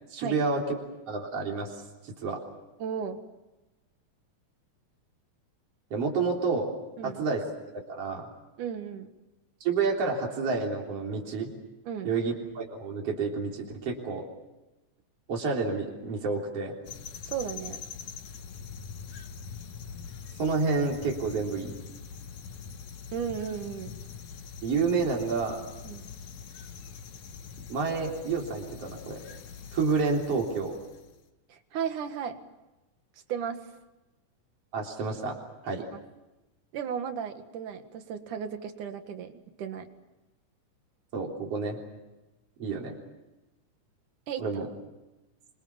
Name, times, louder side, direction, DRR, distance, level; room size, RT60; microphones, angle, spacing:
voice 1, 0.1-0.8 1.1-1.7 2.0-2.4 5.9-6.7 7.0-7.5 7.9-8.3 9.6-11.5 12.0-14.2 15.3-16.7 20.4-21.8 24.6-25.6 27.7-29.2 29.7-30.8 34.7-35.4 35.6-35.9 41.1-41.8 42.6-42.9 44.4-44.7, right 4 dB, 50° right, 0 dB, 4.5 m, -29 dB
voice 2, 2.8-3.2 7.0-7.2 8.6-9.1 11.9-12.1 17.3-17.8 23.1-24.0 25.8-26.0 31.5-32.4 33.3-33.6 35.9-36.0 36.7-39.3 39.6-39.9 44.3-44.4, right 7 dB, 80° right, 7 dB, 3.3 m, -34 dB
sound 1, 16.9-31.2, left 6 dB, 65° left, 2.7 m, -43 dB
27.0 x 24.5 x 7.2 m, 1.0 s
omnidirectional pair, 3.5 m